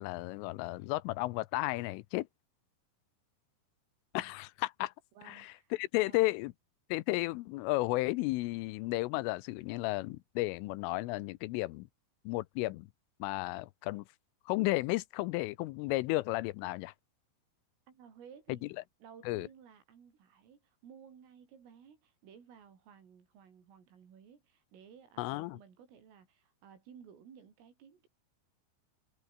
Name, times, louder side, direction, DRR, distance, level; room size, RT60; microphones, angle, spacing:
voice 1, 0.0-2.3 4.1-4.9 5.3-6.5 6.9-11.9 12.3-12.9 13.2-14.0 14.5-16.9 19.3-19.5 25.2-25.6, left 20 dB, 85° left, 3.2 m, -33 dB
voice 2, 5.2-6.3 17.9-18.6 19.0-28.1, right 7 dB, 80° right, 7.3 m, -56 dB
omnidirectional pair, 5.8 m